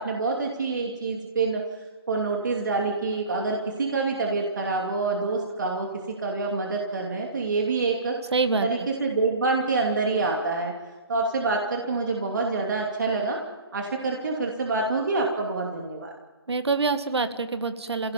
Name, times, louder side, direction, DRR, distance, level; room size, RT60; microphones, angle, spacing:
voice 1, 0.0-8.1 8.6-10.7 11.1-13.4 13.7-16.1, right 3 dB, 45° right, 0 dB, 2.7 m, -27 dB
voice 2, 8.3-8.9 16.5-18.1, right 4 dB, 90° right, 9 dB, 1.9 m, -26 dB
29.0 x 17.0 x 5.3 m, 1.3 s
hypercardioid pair, 180°, 13 cm